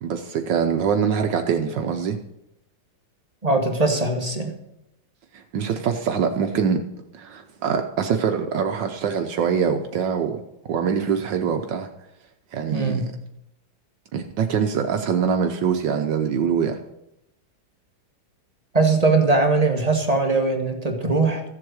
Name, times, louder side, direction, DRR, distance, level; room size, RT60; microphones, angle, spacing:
voice 1, 0.0-2.2 5.3-6.8 7.1-10.4 10.7-11.9 12.5-13.1 14.1-16.8, right 7 dB, 75° right, 5 dB, 1.5 m, -24 dB
voice 2, 3.4-4.6 12.7-13.2 18.7-21.4, right 3 dB, 20° right, 3 dB, 1.4 m, -21 dB
14.5 x 7.7 x 6.3 m, 0.84 s
omnidirectional pair, 2.0 m